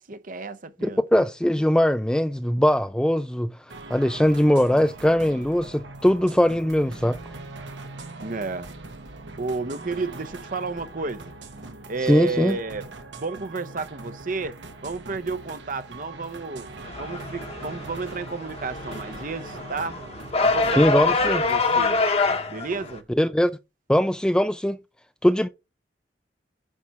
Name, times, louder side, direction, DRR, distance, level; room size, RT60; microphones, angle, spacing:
voice 1, 0.0-1.0 8.2-8.7 9.4-11.3 11.9-12.9 13.2-14.6 14.8-16.7 17.0-20.0 20.4-22.0 22.5-23.1, right 4 dB, 50° right, 0.8 m, -32 dB
voice 2, 0.8-3.5 3.9-7.2 12.1-12.6 20.8-21.4 23.1-23.5 23.9-24.8 25.2-25.5, equal, 5° left, 0.4 m, -21 dB
sound 1, 3.7-21.9, right 2 dB, 85° right, 1.5 m, -41 dB
sound 2, 16.8-23.0, left 3 dB, 35° left, 1.1 m, -25 dB
9.9 x 4.3 x 4.7 m
head